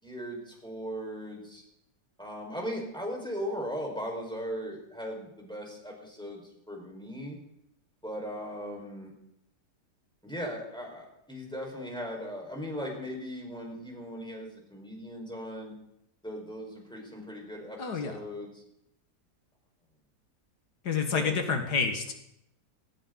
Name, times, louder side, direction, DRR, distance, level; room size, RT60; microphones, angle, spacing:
voice 1, 0.0-1.6 2.2-7.4 8.0-9.1 10.2-15.7 16.2-18.6 21.1-21.5, equal, 5° left, 0 dB, 5.0 m, -38 dB
voice 2, 17.8-18.2 20.8-22.1, left 5 dB, 75° left, 5 dB, 2.2 m, -28 dB
18.5 x 17.5 x 4.0 m, 0.78 s
omnidirectional pair, 1.8 m